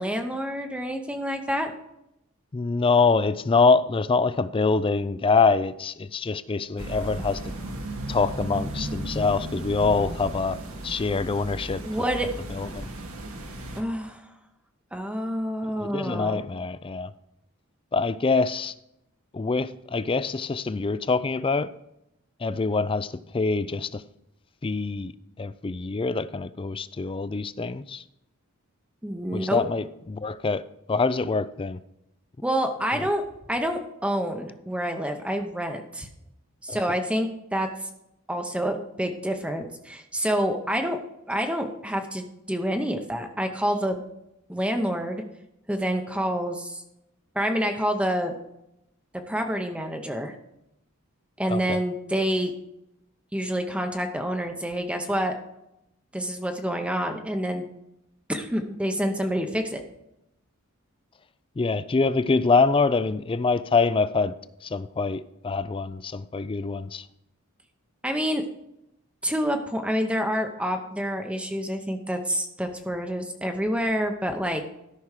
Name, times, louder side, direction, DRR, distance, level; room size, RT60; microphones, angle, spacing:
voice 1, 0.0-1.7 11.8-12.3 13.8-14.3 14.9-16.4 29.0-29.6 32.4-33.2 33.5-36.1 36.6-37.7 38.3-41.0 41.3-44.0 44.5-45.2 45.7-46.8 47.3-48.4 49.3-50.3 51.4-52.5 53.3-55.3 56.1-57.7 58.3-59.8 68.0-68.4 69.2-74.6, equal, 5° right, 0.7 m, -27 dB
voice 2, 2.5-7.4 8.1-10.6 10.8-11.8 12.5-12.9 15.8-17.1 17.9-18.7 19.3-21.7 22.4-24.0 24.6-25.1 25.4-28.0 29.3-30.6 30.9-31.8 32.9-33.0 36.7-36.8 51.5-51.8 61.6-64.3 64.6-67.1, left 4 dB, 25° left, 0.4 m, -25 dB
sound 1, 6.8-13.8, right 1 dB, 80° right, 1.8 m, -35 dB
13.0 x 6.0 x 4.8 m
head